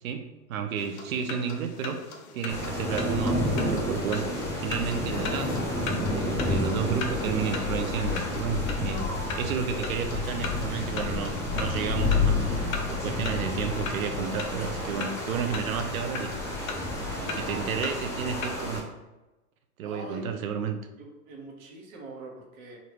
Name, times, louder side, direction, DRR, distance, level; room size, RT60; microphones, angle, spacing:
voice 1, 0.0-2.0 2.3-4.3 4.6-5.5 6.1-9.1 9.4-16.3 17.0-18.8 19.8-20.8, right 7 dB, 65° right, 7 dB, 0.7 m, -32 dB
sound 1, 0.8-18.8, left 4 dB, 65° left, 0.9 m, -40 dB
Zipper (clothing), 2.5-6.8 7.3-7.4 7.6-7.7 7.9-8.3, left 3 dB, 40° left, 1.4 m, -40 dB
sound 2, 2.5-18.8, left 2 dB, 5° left, 0.4 m, -30 dB
voice 2, 17.2-18.0 19.8-20.3 21.0-22.8, right 2 dB, 35° right, 0 dB, 1.2 m, -42 dB
5.1 x 2.7 x 3.1 m, 1.1 s
hypercardioid pair, 125°, 46 cm